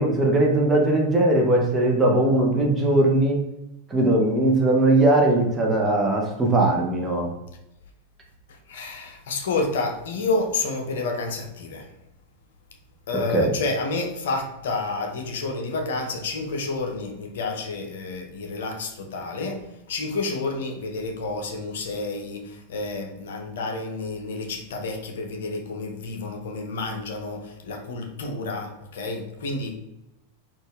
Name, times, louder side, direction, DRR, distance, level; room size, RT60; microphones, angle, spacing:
voice 1, 0.0-3.4 3.9-7.3 13.3-13.5, right 2 dB, 15° right, -1 dB, 0.9 m, -20 dB
voice 2, 8.5-11.9 13.1-29.7, left 3 dB, 60° left, 3 dB, 0.7 m, -30 dB
4.2 x 2.5 x 3.4 m, 0.89 s
figure-of-eight pair, 90°, 0 cm